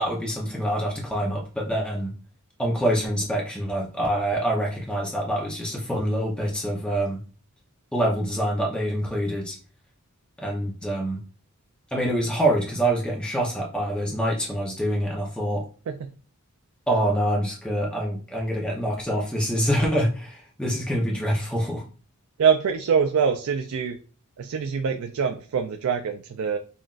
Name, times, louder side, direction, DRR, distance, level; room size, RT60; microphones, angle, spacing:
voice 1, 0.0-2.1 2.6-7.2 7.9-9.6 10.4-11.2 11.9-15.6 16.9-21.8, right 1 dB, 5° left, -3 dB, 0.6 m, -25 dB
voice 2, 22.4-24.0 24.4-26.6, right 6 dB, 70° right, 5 dB, 0.4 m, -24 dB
5.6 x 2.5 x 2.4 m, 0.39 s
head